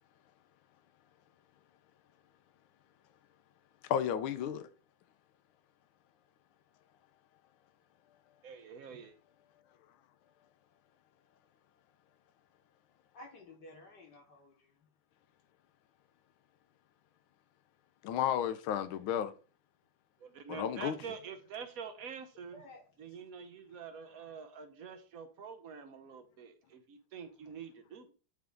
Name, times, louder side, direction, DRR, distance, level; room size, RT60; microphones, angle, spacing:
voice 1, 3.9-4.7 18.0-19.3 20.5-20.9, left 9 dB, 85° left, 1.5 m, -32 dB
voice 2, 8.4-9.1 20.2-22.6 23.0-28.1, right 6 dB, 60° right, 0.9 m, -46 dB
voice 3, 13.1-14.7 22.5-23.3, left 1 dB, 60° left, 1.5 m, -54 dB
9.3 x 3.6 x 3.7 m
omnidirectional pair, 2.2 m